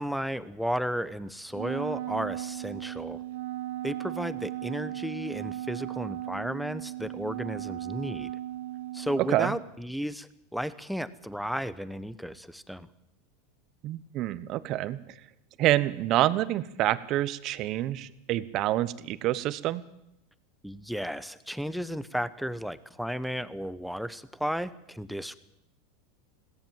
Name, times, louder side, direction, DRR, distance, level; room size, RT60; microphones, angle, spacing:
voice 1, 0.0-3.2 3.8-8.3 8.9-12.9 20.6-25.3, equal, ahead, 15 dB, 1.0 m, -34 dB
Wind instrument woodwind instrument, 1.5-9.7, right 14 dB, 75° right, 0.7 m, -36 dB
voice 2, 9.2-9.5 13.8-15.0 15.6-19.8, right 14 dB, 45° right, 15 dB, 1.2 m, -27 dB
21.0 x 17.0 x 7.4 m, 0.81 s
supercardioid pair, 120°, 0 cm